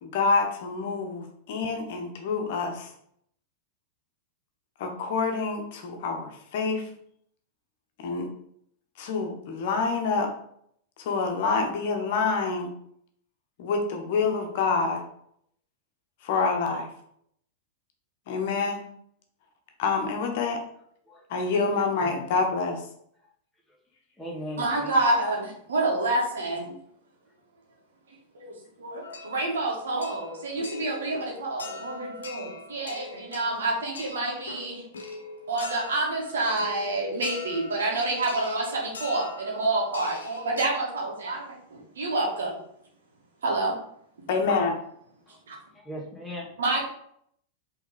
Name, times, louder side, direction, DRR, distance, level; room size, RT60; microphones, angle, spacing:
voice 1, 0.0-2.9 4.8-6.9 8.0-8.3 9.0-10.3 11.0-12.7 13.6-15.0 16.2-16.9 18.3-18.8 19.8-20.6 21.3-22.8 44.3-44.7, left 4 dB, 55° left, 3 dB, 1.2 m, -27 dB
voice 2, 22.0-22.4 24.2-25.2 45.3-45.4 45.8-46.5, equal, ahead, -4 dB, 2.0 m, -38 dB
voice 3, 24.6-26.7 28.3-28.5 28.8-34.8 35.5-42.5 43.4-43.8 45.5-45.6 46.6-46.8, right 2 dB, 70° right, -2 dB, 1.9 m, -28 dB
sound 1, 29.0-40.7, left 3 dB, 75° left, 1.1 m, -42 dB
5.7 x 3.8 x 5.0 m, 0.69 s
figure-of-eight pair, 95°, 0 cm